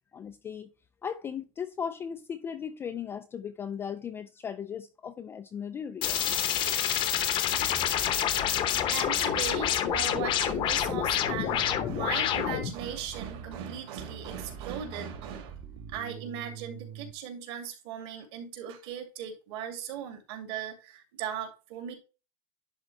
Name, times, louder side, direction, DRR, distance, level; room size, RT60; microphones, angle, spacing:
voice 1, 0.1-0.7 1.0-6.4, left 7 dB, 15° left, 0.3 m, -37 dB
sound 1, 6.0-12.7, left 10 dB, 30° left, 0.8 m, -27 dB
Bass guitar, 7.5-17.1, right 7 dB, 30° right, 1.0 m, -44 dB
voice 2, 8.9-15.6 15.9-22.0, right 8 dB, 55° right, 2.6 m, -38 dB
11.0 x 3.8 x 3.2 m
supercardioid pair, 150°, 17 cm